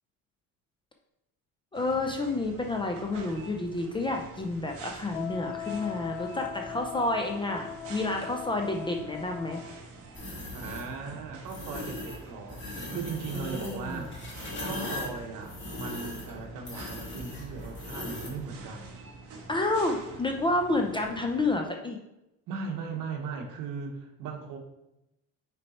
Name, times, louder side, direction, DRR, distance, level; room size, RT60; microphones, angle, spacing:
voice 1, 1.7-9.6 13.3-14.0 19.5-22.0, left 2 dB, 15° left, 2 dB, 0.4 m, -30 dB
sound 1, 1.7-21.6, right 3 dB, 40° right, 1.2 m, -47 dB
Wind instrument woodwind instrument, 5.1-9.8, left 10 dB, 80° left, 0.6 m, -40 dB
sound 2, 10.1-10.9 11.4-12.2 12.5-18.4, left 1 dB, 30° left, 1.9 m, -39 dB
voice 2, 10.5-14.2 14.6-19.0 22.5-24.6, right 5 dB, 60° right, 3 dB, 1.3 m, -38 dB
6.4 x 4.2 x 4.2 m, 0.90 s
cardioid pair, 145°, 36 cm